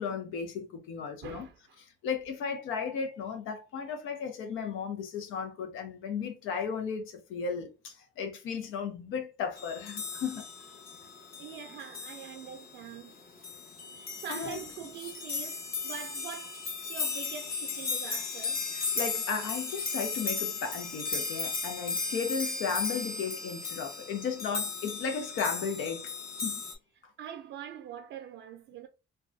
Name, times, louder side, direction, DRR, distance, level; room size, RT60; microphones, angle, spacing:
voice 1, 0.0-1.5 2.0-10.5 14.3-14.6 18.7-26.1 26.4-26.6, left 6 dB, 90° left, 0.6 m, -35 dB
voice 2, 1.2-1.8 2.4-2.6 11.4-13.2 13.9-16.6 16.9-18.7 26.9-28.9, right 8 dB, 75° right, 0.4 m, -44 dB
sound 1, 9.6-26.7, left 4 dB, 50° left, 1.1 m, -36 dB
3.4 x 2.2 x 2.5 m
cardioid pair, 90°, 20 cm